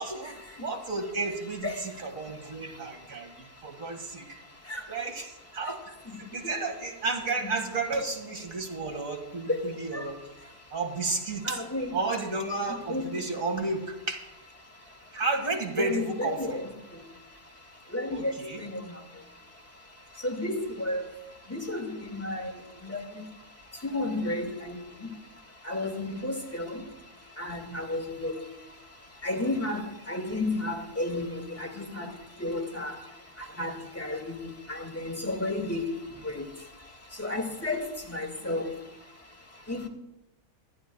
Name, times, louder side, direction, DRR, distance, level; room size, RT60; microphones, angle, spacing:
voice 1, 0.0-4.4 4.9-5.8 6.3-10.2 10.7-11.6 11.9-14.2 15.1-16.6 18.1-18.6, right 3 dB, 60° right, 2.3 m, -32 dB
voice 2, 11.4-12.0 12.9-13.3 15.8-16.7 17.9-18.8 20.2-21.1 21.5-22.5 22.8-23.0 23.8-25.1 25.7-26.8 27.4-28.4 29.2-29.8 30.1-32.1 32.4-32.9 33.6-34.4 34.7-35.8 36.2-36.4 37.2-38.7 39.7-39.9, left 2 dB, 10° left, 1.8 m, -32 dB
24.0 x 11.0 x 2.3 m
omnidirectional pair, 1.6 m